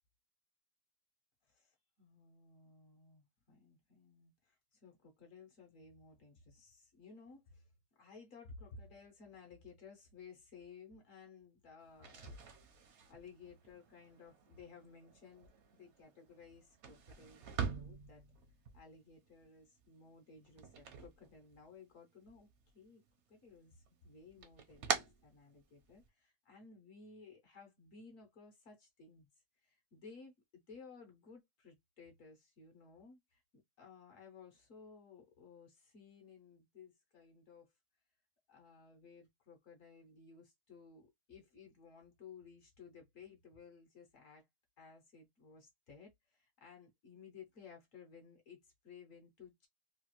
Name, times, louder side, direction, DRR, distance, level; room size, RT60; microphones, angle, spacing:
voice 1, 1.5-12.4 13.1-17.5 17.7-18.2 18.7-22.5 22.7-23.0 23.3-29.3 29.6-30.3 30.7-37.7 38.5-44.5 44.8-49.7, left 5 dB, 60° left, 1.0 m, -57 dB
sound 1, 11.9-21.9 22.2-23.1 23.5-26.1, right 6 dB, 60° right, 0.7 m, -45 dB
3.2 x 2.3 x 2.9 m
omnidirectional pair, 1.8 m